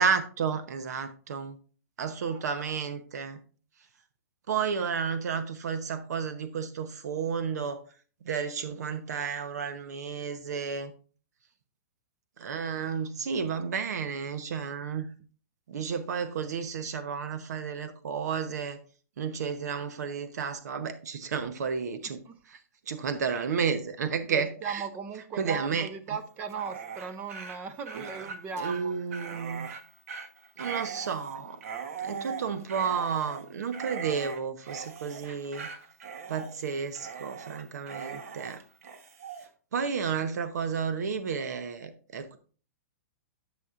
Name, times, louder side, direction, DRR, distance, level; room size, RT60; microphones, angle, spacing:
voice 1, 0.0-1.6 2.0-3.4 4.5-7.8 8.2-10.9 12.4-15.1 15.7-18.8 19.2-22.2 22.5-22.6 22.9-24.8 25.4-25.9 27.9-28.3 28.6-29.7 30.6-31.6 32.0-35.7 36.3-38.6 39.7-42.4, right 6 dB, 75° right, 0.9 m, -32 dB
voice 2, 24.3-28.9, right 6 dB, 20° right, 0.5 m, -37 dB
Dog, 26.5-39.5, right 6 dB, 60° right, 1.2 m, -40 dB
11.0 x 6.2 x 2.5 m
hypercardioid pair, 165°, 9 cm